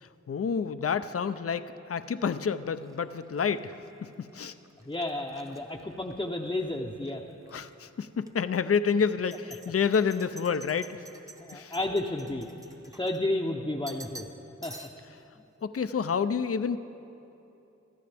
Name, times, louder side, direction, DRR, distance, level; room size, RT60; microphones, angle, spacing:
voice 1, 0.0-3.7 4.0-4.5 7.5-11.0 11.5-11.7 15.6-16.8, left 6 dB, 50° left, 12 dB, 0.5 m, -29 dB
sound 1, 2.8-6.8 7.1-7.7 8.2-8.3 9.1-13.5 13.9-14.4 14.6-15.2, right 1 dB, 10° right, 0.9 m, -50 dB
voice 2, 4.8-7.2 11.3-12.5 12.9-14.2 14.6-14.7, left 1 dB, 15° left, -1 dB, 0.7 m, -31 dB
23.5 x 14.0 x 3.4 m, 2.8 s
wide cardioid pair, 70°, 29 cm